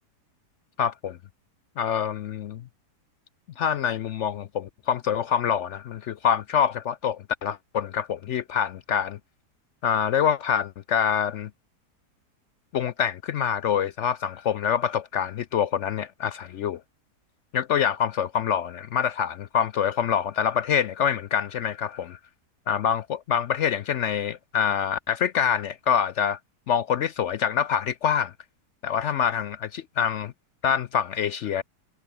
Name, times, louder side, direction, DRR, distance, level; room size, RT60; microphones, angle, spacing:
voice 1, 0.8-1.2 1.8-2.6 3.6-9.2 9.8-11.5 12.7-16.8 17.5-22.2 22.7-26.4 26.7-28.3 28.8-30.3 30.6-31.6, left 8 dB, 70° left, 0.6 m, -25 dB
omnidirectional pair, 1.8 m